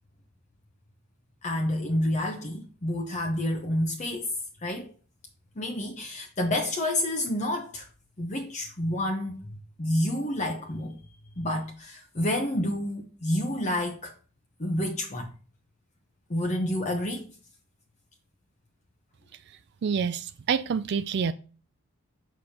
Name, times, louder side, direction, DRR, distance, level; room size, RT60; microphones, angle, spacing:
voice 1, 1.4-4.3 4.6-4.9 5.6-7.9 8.2-9.4 9.8-11.0 11.4-14.1 14.6-15.3 16.3-17.3, left 1 dB, 30° left, 0.8 m, -29 dB
voice 2, 19.8-21.3, right 6 dB, 50° right, 0.3 m, -27 dB
6.7 x 6.1 x 2.9 m
head